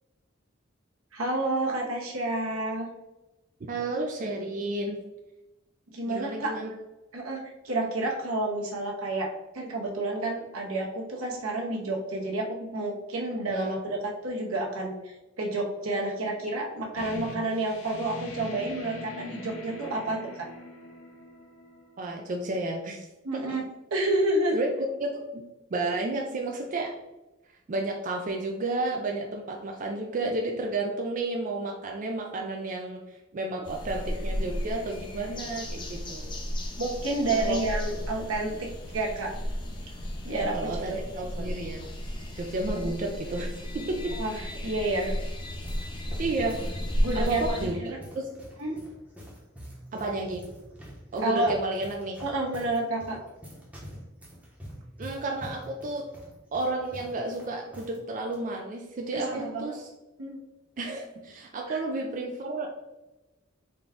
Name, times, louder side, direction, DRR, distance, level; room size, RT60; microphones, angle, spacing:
voice 1, 1.1-2.9 5.9-6.6 7.1-9.3 9.5-20.4 23.2-23.6 23.9-24.6 36.8-38.5 38.9-39.4 40.2-41.5 42.7-42.9 44.2-45.1 47.0-48.0 48.6-48.8 51.2-51.5 52.2-53.2 59.1-59.7 60.2-60.4 61.7-61.8, right 2 dB, 80° right, -1 dB, 0.9 m, -30 dB
voice 2, 3.6-5.0 6.1-6.7 13.5-13.8 22.0-23.1 23.3-23.6 24.5-25.4 25.7-26.9 27.7-33.0 33.3-36.4 37.3-37.6 40.5-41.9 42.4-44.1 46.2-46.8 47.1-48.3 49.9-50.4 51.1-52.2 55.0-56.1 56.5-59.9 60.8-62.7, right 2 dB, 40° right, 1 dB, 0.3 m, -32 dB
sound 1, 17.0-22.4, left 2 dB, 75° left, 0.7 m, -43 dB
sound 2, 33.6-47.7, equal, 25° left, 0.5 m, -34 dB
sound 3, 45.3-58.0 58.2-58.4 59.1-59.4, equal, 5° right, 0.8 m, -46 dB
3.9 x 2.3 x 3.5 m, 1.0 s
head